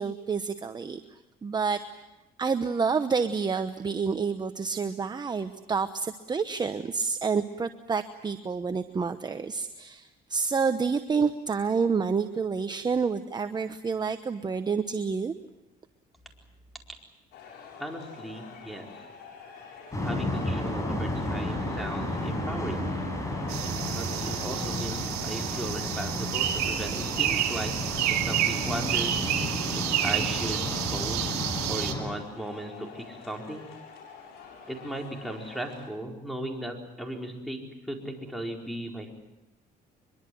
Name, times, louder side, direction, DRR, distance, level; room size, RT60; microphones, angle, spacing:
voice 1, 0.0-1.8 2.4-15.3, right 5 dB, 25° right, 9 dB, 1.0 m, -29 dB
sound 1, 17.3-35.9, left 6 dB, 80° left, 7.3 m, -49 dB
voice 2, 17.8-18.9 20.0-22.9 23.9-27.7 28.1-29.1 29.7-30.6 30.9-31.3 31.7-33.7 34.7-39.1, right 1 dB, ahead, 2 dB, 4.5 m, -37 dB
sound 2, 19.9-32.0, left 1 dB, 20° left, 6.8 m, -32 dB
sound 3, 23.5-31.9, right 11 dB, 75° right, 2.9 m, -30 dB
24.0 x 23.0 x 7.8 m, 0.97 s
cardioid pair, 110°, 17 cm